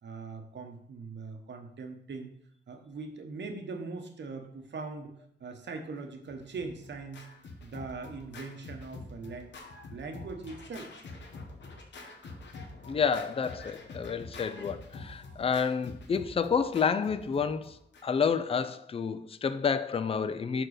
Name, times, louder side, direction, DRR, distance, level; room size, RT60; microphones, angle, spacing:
voice 1, 0.0-2.3 2.7-5.1 5.4-7.3 7.6-9.5 9.9-10.9, right 4 dB, 75° right, 1.0 m, -41 dB
Scratching (performance technique), 6.2-18.3, left 3 dB, 85° left, 1.1 m, -46 dB
voice 2, 12.9-20.7, left 6 dB, 30° left, 0.4 m, -29 dB
6.0 x 4.5 x 4.9 m
wide cardioid pair, 115°, 18 cm